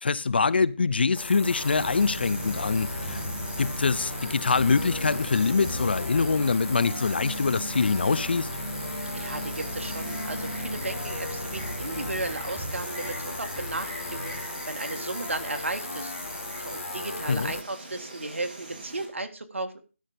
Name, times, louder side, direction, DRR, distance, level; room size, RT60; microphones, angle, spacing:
voice 1, 0.0-3.2 3.6-8.5 17.3-17.5, left 4 dB, 50° left, 0.5 m, -24 dB
sound 1, 1.1-17.6, left 2 dB, 85° left, 0.8 m, -37 dB
Insect, 1.6-19.1, right 2 dB, 40° right, 3.3 m, -43 dB
sound 2, 1.7-14.5, equal, 5° left, 4.2 m, -37 dB
voice 2, 9.1-16.1 16.6-19.8, right 2 dB, 70° right, 1.7 m, -35 dB
12.5 x 5.7 x 5.1 m
figure-of-eight pair, 160°, 7 cm